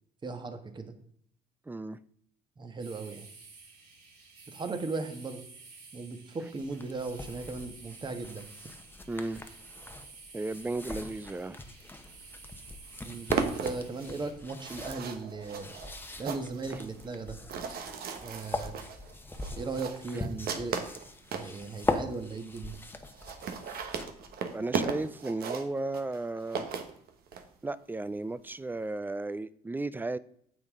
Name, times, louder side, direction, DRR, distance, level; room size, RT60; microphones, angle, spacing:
voice 1, 0.2-0.9 2.6-3.3 4.5-5.4 5.9-8.4 13.0-15.8 16.2-17.4 18.2-18.7 19.5-20.8 21.3-22.8, right 3 dB, 25° right, 1.3 m, -37 dB
voice 2, 1.7-2.0 9.1-9.4 10.3-11.6 16.7-16.8 24.5-26.7 27.6-30.2, right 2 dB, 10° right, 0.4 m, -34 dB
sound 1, 2.8-14.3, right 4 dB, 85° right, 4.2 m, -52 dB
sound 2, 6.6-24.3, left 2 dB, 10° left, 1.0 m, -41 dB
sound 3, 12.3-12.4 12.7-21.5 22.1-22.2 22.4-22.5 22.7-22.8 23.1-27.4, right 6 dB, 65° right, 1.3 m, -36 dB
9.4 x 7.2 x 3.7 m
cardioid pair, 110°, 17 cm